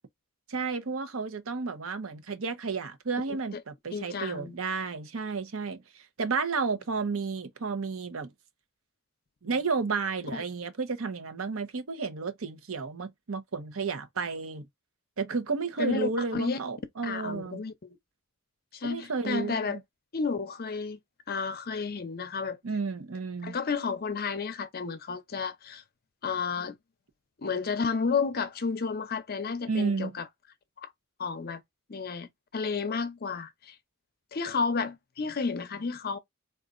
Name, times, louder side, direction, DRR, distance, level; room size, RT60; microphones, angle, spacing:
voice 1, 0.5-8.3 9.4-14.7 15.2-17.6 18.8-19.8 22.6-23.6 29.7-30.2, right 4 dB, 75° right, 0.8 m, -32 dB
voice 2, 3.9-4.6 10.3-10.4 15.8-16.6 17.0-18.0 18.7-19.8 20.1-21.0 21.3-22.6 23.4-25.8 26.2-26.8 27.4-30.3 30.8-30.9 31.2-31.6 31.9-33.7 34.3-36.2, left 5 dB, 45° left, 0.6 m, -32 dB
3.9 x 2.4 x 2.4 m
head